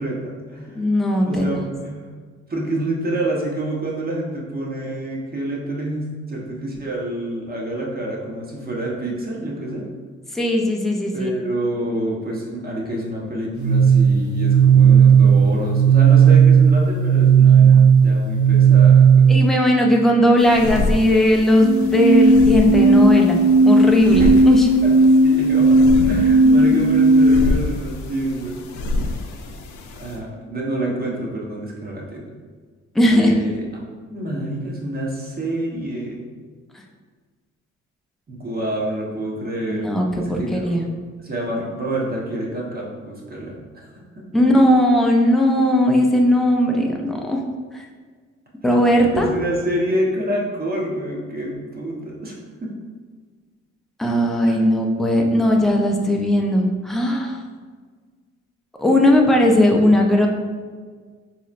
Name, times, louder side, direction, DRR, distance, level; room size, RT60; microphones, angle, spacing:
voice 1, 0.0-0.8 1.2-2.0 2.5-9.9 11.1-19.4 24.2-24.4 24.8-24.9 25.2-28.7 30.0-32.2 33.1-33.6 34.1-36.2 38.3-39.9 40.1-40.8 41.2-43.9 44.3-44.4 48.7-52.3 52.6-52.7 54.5-54.7, right 1 dB, 30° right, -2 dB, 1.0 m, -27 dB
voice 2, 0.7-1.5 10.3-11.3 19.3-24.7 26.4-26.6 33.0-33.3 39.7-40.8 44.3-47.4 47.7-47.8 48.6-49.3 54.0-57.4 58.8-60.3, left 1 dB, ahead, 0 dB, 0.4 m, -17 dB
sound 1, 13.5-19.5 21.5-27.5, right 4 dB, 70° right, 1.5 m, -14 dB
sound 2, 20.4-30.2, left 2 dB, 90° left, 0.5 m, -28 dB
4.1 x 3.0 x 2.4 m, 1.5 s
cardioid pair, 90°, 30 cm